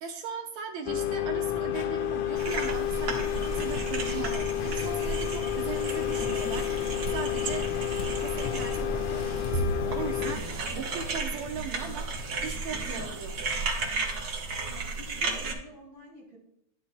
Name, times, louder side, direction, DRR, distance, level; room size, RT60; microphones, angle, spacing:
voice 1, 0.0-7.7 8.0-13.4, right 6 dB, 70° right, 3 dB, 2.1 m, -39 dB
sound 1, 0.9-10.4, left 10 dB, 90° left, 2.3 m, -30 dB
sound 2, 2.4-15.5, right 3 dB, 50° right, 1.8 m, -34 dB
sound 3, 4.8-5.7 6.3-7.2 7.7-8.1 9.2-9.5 10.4-11.1 12.2-12.6 12.9-13.0 14.1-14.2 14.6-14.7, left 2 dB, 70° left, 2.6 m, -46 dB
voice 2, 14.3-16.4, equal, 45° left, -4 dB, 4.5 m, -49 dB
11.5 x 11.0 x 2.2 m, 0.76 s
omnidirectional pair, 3.5 m